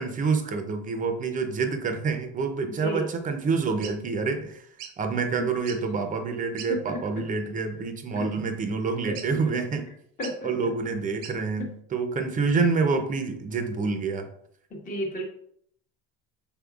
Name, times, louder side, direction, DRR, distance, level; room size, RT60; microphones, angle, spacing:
voice 1, 0.0-4.7 5.0-9.8 10.4-14.3, right 4 dB, 25° right, 7 dB, 0.6 m, -27 dB
sound 1, 3.8-4.0 4.8-5.0 5.5-5.9 6.6-6.7 7.3-7.5 9.1-9.5 10.2-10.4 11.2-11.4, right 8 dB, 85° right, 0.7 m, -42 dB
voice 2, 6.7-7.0 8.1-8.3 9.1-9.2 10.2-10.5 14.7-15.2, equal, 25° left, -1 dB, 0.9 m, -32 dB
5.2 x 4.0 x 2.4 m, 0.67 s
cardioid pair, 145°, 30 cm